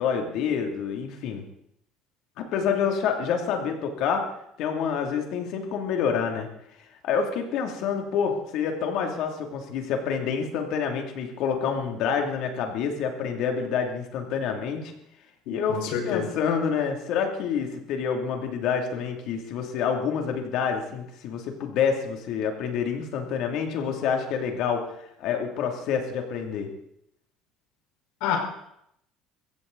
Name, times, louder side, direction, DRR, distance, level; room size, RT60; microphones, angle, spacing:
voice 1, 0.0-1.4 2.4-4.3 4.6-6.5 7.0-14.9 15.5-24.9 25.2-26.7, left 6 dB, 60° left, 3 dB, 2.9 m, -27 dB
voice 2, 15.7-16.3 28.2-28.4, left 9 dB, 80° left, 1 dB, 5.0 m, -27 dB
22.5 x 15.5 x 4.1 m, 0.76 s
cardioid pair, 160°, 0 cm